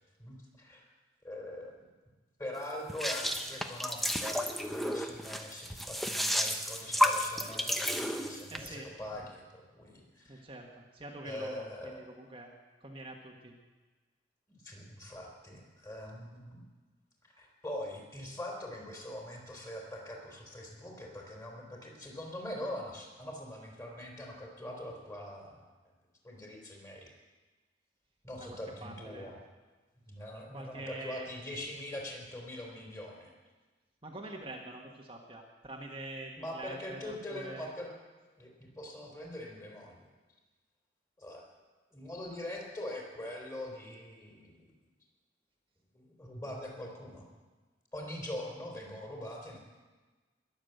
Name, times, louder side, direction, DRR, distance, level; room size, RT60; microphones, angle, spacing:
voice 1, 0.2-0.9 1.2-1.7 2.4-10.4 11.2-12.0 14.5-16.6 17.4-25.7 26.2-27.1 28.2-29.4 30.0-33.3 36.4-37.9 38.4-40.1 41.2-41.4 41.9-44.7 45.9-47.3 47.9-49.6, left 1 dB, 20° left, -1 dB, 3.6 m, -43 dB
sound 1, 2.9-8.7, equal, ahead, 0.9 m, -32 dB
voice 2, 8.5-8.9 10.3-12.5 12.8-13.5 28.4-29.3 30.5-31.3 34.0-37.7, right 2 dB, 30° right, -1 dB, 1.5 m, -45 dB
21.0 x 7.4 x 7.9 m, 1.3 s
head